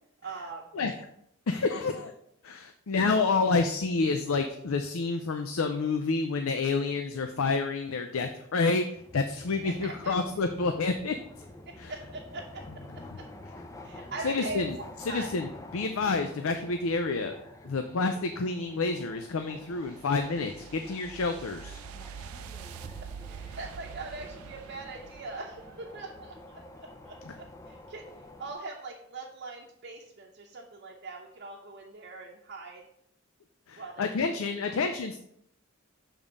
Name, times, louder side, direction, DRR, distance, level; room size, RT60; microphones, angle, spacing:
voice 1, 0.2-0.7 9.6-10.2 11.7-13.3 13.8-14.7 15.1-15.3 23.3-26.6 27.0-32.8 33.8-34.8, right 3 dB, 50° right, -2 dB, 0.7 m, -42 dB
voice 2, 1.5-2.1 2.4-11.1 11.8-11.9 14.2-14.7 15.1-17.3 17.6-21.8 27.3-27.4 33.7-35.2, left 4 dB, 75° left, 7 dB, 0.5 m, -29 dB
sound 1, 9.0-28.5, left 1 dB, 15° left, 0.5 m, -49 dB
sound 2, 18.8-26.1, right 7 dB, 80° right, 0.4 m, -45 dB
6.9 x 3.6 x 5.3 m, 0.73 s
head